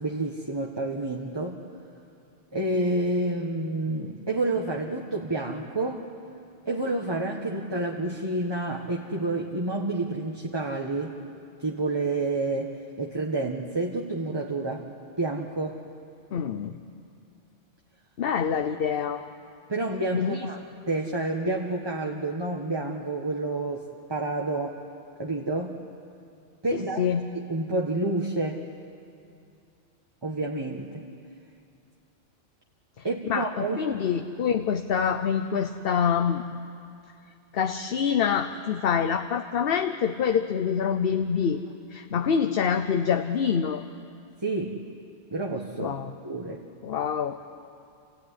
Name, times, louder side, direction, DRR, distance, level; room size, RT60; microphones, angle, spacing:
voice 1, 0.0-1.6 2.5-6.1 6.6-11.2 11.6-14.9 15.2-15.8 19.7-20.6 20.9-24.8 25.2-25.8 26.6-27.0 27.3-28.6 30.2-31.0 33.0-33.8 44.4-44.8 45.3-46.0 46.2-46.6, right 2 dB, 20° right, -1 dB, 1.3 m, -29 dB
voice 2, 16.3-16.8 18.2-19.2 20.1-20.5 27.0-27.2 33.3-36.6 37.5-41.6 41.9-43.8 45.8-46.1 46.8-47.4, left 7 dB, 55° left, 7 dB, 0.9 m, -26 dB
28.0 x 16.0 x 9.9 m, 2.5 s
omnidirectional pair, 1.2 m